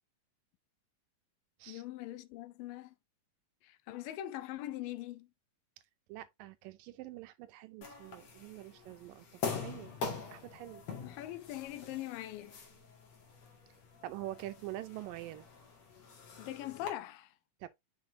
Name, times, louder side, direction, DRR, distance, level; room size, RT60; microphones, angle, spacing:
voice 1, 1.7-2.9 3.6-5.3 11.0-12.5 16.4-17.3, left 14 dB, 80° left, 2.4 m, -42 dB
voice 2, 6.1-9.9 10.3-10.9 14.0-15.5 17.6-17.7, right 15 dB, 85° right, 2.3 m, -45 dB
sound 1, 7.8-16.9, left 5 dB, 55° left, 3.1 m, -44 dB
6.4 x 6.1 x 2.7 m
omnidirectional pair, 4.0 m